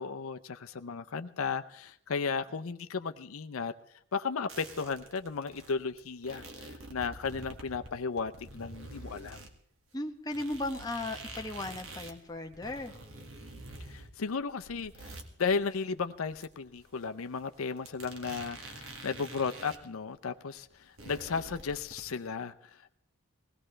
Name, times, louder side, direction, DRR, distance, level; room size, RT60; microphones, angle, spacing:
voice 1, 0.0-3.7 4.1-9.4 13.9-22.9, left 5 dB, 75° left, 10 dB, 0.6 m, -35 dB
sound 1, 4.5-9.5 9.9-10.0 10.3-19.8 20.1-20.2 20.5-22.3, right 2 dB, 60° right, 1.9 m, -47 dB
voice 2, 9.9-12.9, left 2 dB, 20° left, 3 dB, 1.1 m, -36 dB
21.0 x 17.0 x 3.3 m, 0.68 s
head